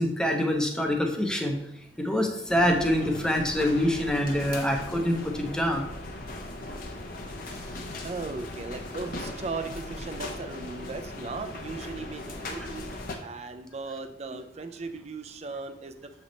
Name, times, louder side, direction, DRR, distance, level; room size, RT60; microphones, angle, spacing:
voice 1, 0.0-1.6 2.0-5.8, left 1 dB, 5° left, 2 dB, 0.7 m, -25 dB
sound 1, 2.5-13.2, left 2 dB, 50° left, 0.8 m, -38 dB
voice 2, 8.0-16.1, right 4 dB, 35° right, 9 dB, 0.4 m, -37 dB
7.1 x 3.4 x 3.9 m, 0.80 s
head